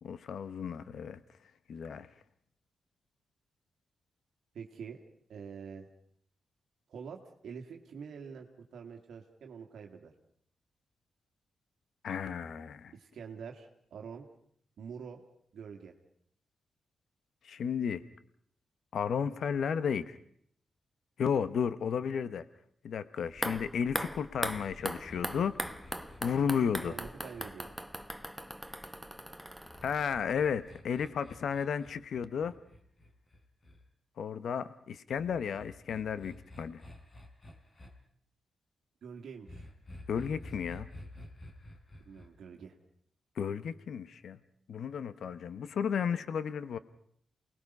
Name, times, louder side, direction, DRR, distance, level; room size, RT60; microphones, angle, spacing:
voice 1, 0.0-1.2 1.7-2.1 12.0-12.9 17.4-18.0 18.9-20.2 21.2-22.4 22.8-25.8 26.2-27.0 29.8-32.5 34.2-36.8 40.1-40.9 43.4-44.4 44.7-46.8, left 7 dB, 75° left, 14 dB, 0.9 m, -33 dB
voice 2, 4.5-5.0 5.3-5.9 6.9-10.1 12.9-14.3 14.8-15.2 15.5-15.9 26.8-27.7 39.0-39.7 42.1-42.7, right 6 dB, 80° right, 2 dB, 1.9 m, -46 dB
sound 1, 23.3-30.4 30.7-30.8, equal, ahead, 0.9 m, -40 dB
sound 2, 24.3-28.7 29.7-33.8 35.2-37.9 39.5-42.3, left 1 dB, 35° left, 4.0 m, -51 dB
28.5 x 19.5 x 5.4 m, 0.66 s
cardioid pair, 110°, 0 cm